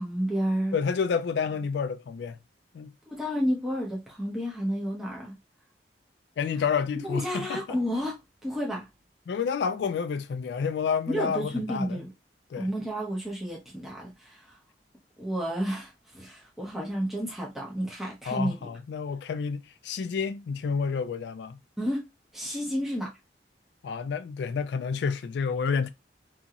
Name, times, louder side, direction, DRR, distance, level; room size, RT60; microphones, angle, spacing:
voice 1, 0.0-0.8 3.1-5.3 7.0-8.9 11.1-12.1 12.6-14.6 15.2-18.5 21.8-23.1, equal, ahead, 0.8 m, -31 dB
voice 2, 0.7-2.4 2.7-2.9 6.4-7.8 9.3-12.0 12.5-12.7 18.3-21.6 23.8-25.9, left 6 dB, 70° left, 0.3 m, -29 dB
2.8 x 2.7 x 2.4 m
head